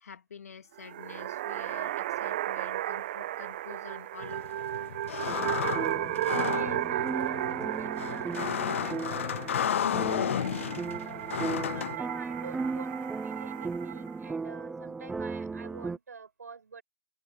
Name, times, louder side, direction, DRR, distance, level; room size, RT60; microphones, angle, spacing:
voice 1, 0.0-4.7, left 6 dB, 65° left, 2.6 m, -48 dB
sound 1, 0.8-14.1, right 14 dB, 35° right, 1.0 m, -35 dB
sound 2, 4.2-12.0, left 9 dB, 50° left, 0.5 m, -33 dB
sound 3, 5.3-16.0, right 4 dB, 5° right, 0.6 m, -37 dB
voice 2, 6.5-11.3 11.7-16.8, right 5 dB, 75° right, 6.8 m, -48 dB
hypercardioid pair, 150°, 9 cm